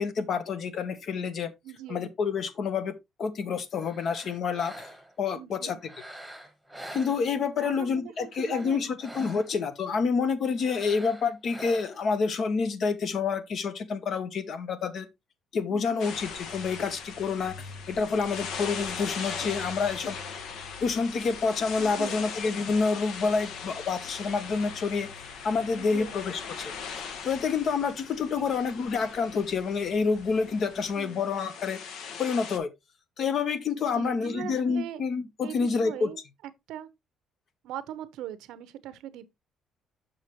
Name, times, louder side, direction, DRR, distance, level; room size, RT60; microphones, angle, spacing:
voice 1, 0.0-1.5 1.9-2.9 3.2-4.9 5.2-5.8 6.9-15.1 15.5-20.2 20.8-25.1 25.4-26.7 27.2-31.8 32.2-32.7 33.2-36.1, left 5 dB, 50° left, 1.0 m, -28 dB
voice 2, 1.6-2.1 5.3-5.8 7.6-9.0 15.7-16.2 21.8-22.3 25.7-26.2 28.4-28.5 31.0-31.3 33.8-35.0 35.4-36.2 36.7-36.9 37.6-39.3, right 11 dB, 90° right, 0.8 m, -41 dB
sound 1, 3.7-5.2 5.8-7.7 8.2-9.7 10.6-12.2, right 1 dB, ahead, 1.3 m, -46 dB
sound 2, 16.0-32.6, left 6 dB, 70° left, 1.1 m, -40 dB
sound 3, 16.1-30.9, left 3 dB, 85° left, 2.4 m, -50 dB
6.5 x 6.4 x 3.1 m
cardioid pair, 140°, 0 cm